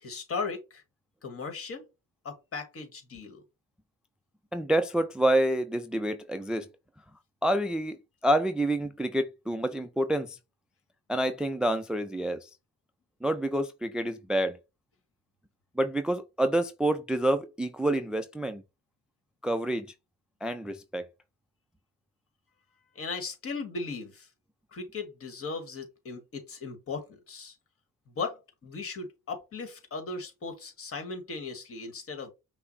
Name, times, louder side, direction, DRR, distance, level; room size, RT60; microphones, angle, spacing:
voice 1, 0.0-0.8 1.2-1.8 2.2-3.4 22.9-24.3 24.7-27.5 28.1-32.3, left 4 dB, 50° left, 1.5 m, -37 dB
voice 2, 4.5-6.7 7.4-8.0 8.2-10.4 11.1-12.5 13.2-14.6 15.8-18.6 19.4-19.9 20.4-21.0, right 1 dB, 5° right, 0.3 m, -28 dB
5.6 x 2.0 x 4.0 m
cardioid pair, 90°, 30 cm